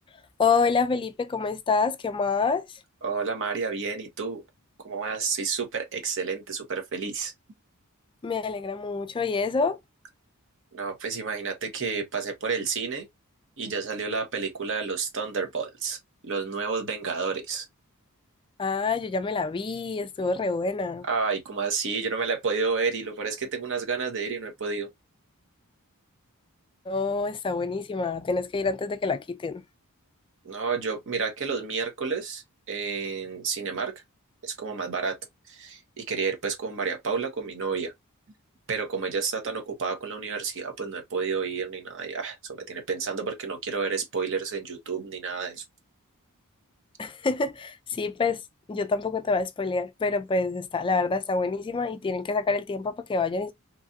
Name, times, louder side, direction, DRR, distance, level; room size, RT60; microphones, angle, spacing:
voice 1, 0.4-2.8 8.2-9.8 18.6-21.1 26.9-29.6 47.0-48.4 48.7-53.5, left 4 dB, 20° left, 0.3 m, -27 dB
voice 2, 3.0-4.4 4.8-7.3 10.7-13.1 13.6-16.0 16.2-17.6 21.0-24.9 30.4-32.4 32.7-33.9 34.4-35.2 35.5-37.9 38.7-45.6, right 5 dB, 60° right, 1.0 m, -30 dB
3.1 x 2.5 x 2.7 m
head